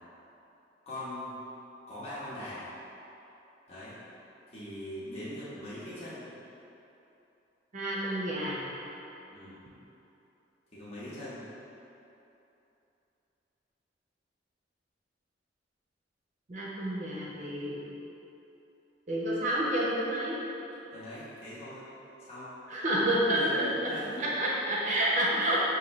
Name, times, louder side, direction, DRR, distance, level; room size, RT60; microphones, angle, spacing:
voice 1, 0.9-1.3 1.9-2.7 3.7-4.0 4.5-6.3 9.3-9.6 10.7-11.4 20.9-21.9 22.2-22.6 23.3-24.3, left 1 dB, 35° left, -12 dB, 0.9 m, -41 dB
voice 2, 7.7-8.6 16.5-17.8 19.1-20.4 22.7-23.9 24.2-25.7, right 1 dB, 45° right, -6 dB, 0.6 m, -29 dB
5.2 x 2.7 x 3.0 m, 2.9 s
head